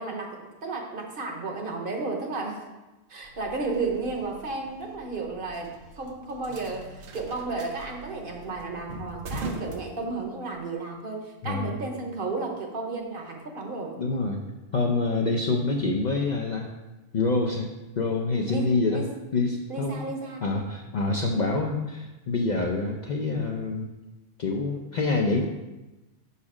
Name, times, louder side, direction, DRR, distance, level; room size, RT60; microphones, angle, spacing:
voice 1, 0.0-2.6 3.1-14.0 18.5-19.1 19.7-20.4, right 3 dB, 50° right, 2 dB, 1.1 m, -33 dB
sound 1, 3.2-10.6, right 2 dB, 75° right, 1.0 m, -41 dB
voice 2, 14.0-14.4 14.7-16.7 17.1-17.7 18.0-19.0 19.3-20.0 20.4-23.9 24.4-25.5, left 3 dB, 55° left, 1 dB, 0.5 m, -26 dB
6.0 x 4.2 x 4.8 m, 1.1 s
omnidirectional pair, 1.2 m